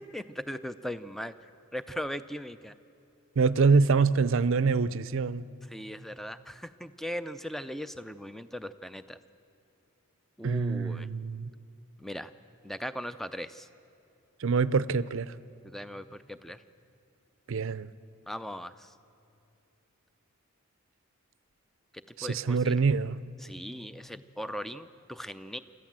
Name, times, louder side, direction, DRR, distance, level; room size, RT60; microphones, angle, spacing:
voice 1, 0.1-1.3 1.7-2.7 5.7-9.2 10.4-11.1 12.0-12.3 12.6-13.7 15.6-16.6 18.3-18.9 22.2-22.7 23.4-25.6, equal, ahead, 12 dB, 0.4 m, -39 dB
voice 2, 3.4-5.4 10.4-11.5 14.4-15.3 17.5-17.9 22.2-23.2, right 4 dB, 60° right, 16 dB, 0.5 m, -25 dB
25.0 x 14.0 x 7.4 m, 2.7 s
head